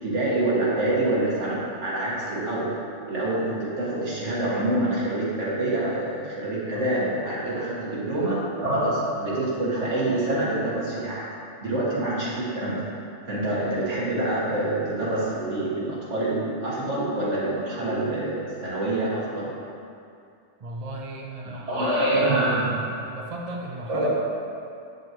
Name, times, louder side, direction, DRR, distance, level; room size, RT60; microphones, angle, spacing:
voice 1, 0.0-2.8 3.1-11.3 11.6-12.9 13.3-19.5 21.5-22.8 23.9-24.1, right 1 dB, 70° right, -7 dB, 1.9 m, -26 dB
voice 2, 20.6-21.7 23.1-24.1, right 2 dB, 40° right, -1 dB, 0.6 m, -36 dB
7.6 x 6.2 x 3.0 m, 2.5 s
omnidirectional pair, 1.3 m